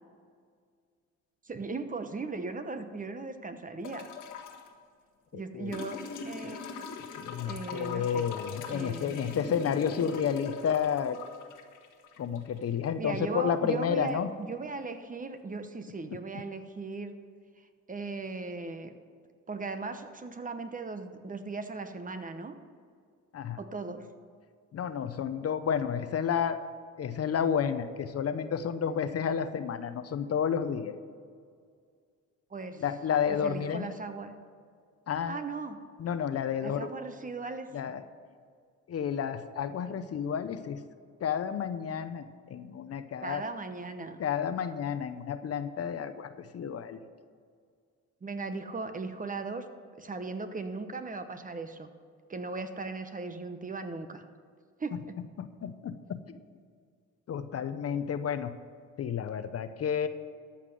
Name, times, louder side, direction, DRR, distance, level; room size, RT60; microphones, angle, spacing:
voice 1, 1.4-4.1 5.3-6.6 7.5-8.2 8.7-9.3 13.0-17.1 17.9-18.9 19.5-22.5 23.6-24.1 32.5-32.8 33.3-34.4 35.3-35.8 36.6-37.7 43.2-44.2 48.2-49.7 50.0-51.9 52.3-54.3 54.8-55.2, right 3 dB, 25° right, 8 dB, 1.0 m, -38 dB
sound 1, 3.8-4.7 5.7-12.7 14.1-14.2, left 5 dB, 80° left, 1.5 m, -42 dB
voice 2, 5.3-5.8 6.4-6.5 7.2-11.2 12.2-14.3 23.3-23.6 24.7-26.6 27.0-30.9 32.8-33.9 35.1-35.4 36.0-36.9 37.7-38.0 38.9-40.8 41.2-43.4 44.2-47.0 55.4-56.4 57.3-58.5 59.0-60.1, left 7 dB, 55° left, 11 dB, 0.8 m, -31 dB
13.5 x 5.8 x 7.7 m, 2.1 s
cardioid pair, 90°, 30 cm